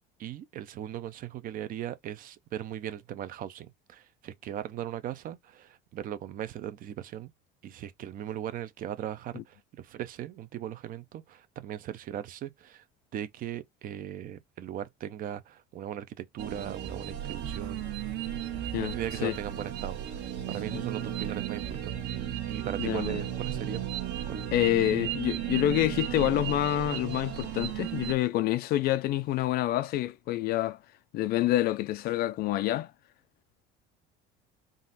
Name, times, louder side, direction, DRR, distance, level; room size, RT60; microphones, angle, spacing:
voice 1, 0.2-7.3 7.6-12.8 13.1-17.9 18.8-22.0 22.5-23.9 24.3-24.5, right 11 dB, 45° right, 0.6 m, -38 dB
sound 1, 16.4-28.1, right 10 dB, 60° right, 1.3 m, -35 dB
voice 2, 22.8-23.2 24.5-30.8 31.1-32.9, left 14 dB, 50° left, 0.4 m, -27 dB
3.8 x 2.5 x 4.0 m
cardioid pair, 140°, 21 cm